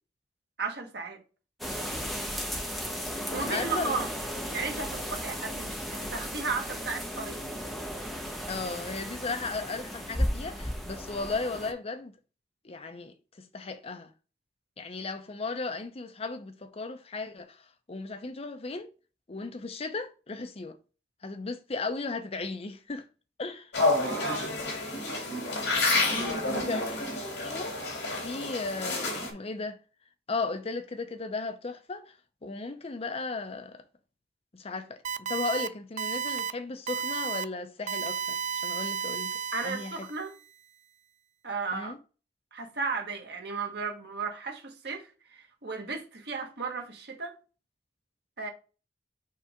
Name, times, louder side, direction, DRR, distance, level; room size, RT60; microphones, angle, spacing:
voice 1, 0.6-1.2 3.3-4.1 4.5-7.4 24.0-24.5 26.1-26.7 39.5-40.4 41.4-42.0 42.5-47.3 48.4-48.5, right 4 dB, 70° right, 1.4 m, -35 dB
sound 1, 1.6-11.7, equal, ahead, 0.9 m, -35 dB
voice 2, 3.3-4.0 8.5-12.1 12.6-14.1 14.8-18.9 19.3-20.8 21.2-23.1 23.4-23.7 26.5-26.8 27.4-27.8 28.2-29.8 30.3-32.2 32.4-33.8 34.5-39.4 39.6-40.1 41.7-42.0, left 3 dB, 35° left, 0.6 m, -36 dB
sound 2, 23.7-29.3, left 2 dB, 75° left, 2.7 m, -29 dB
sound 3, 35.0-35.7 36.0-36.5 36.9-37.4 37.9-40.2, right 7 dB, 45° right, 0.3 m, -33 dB
5.6 x 3.4 x 4.9 m
head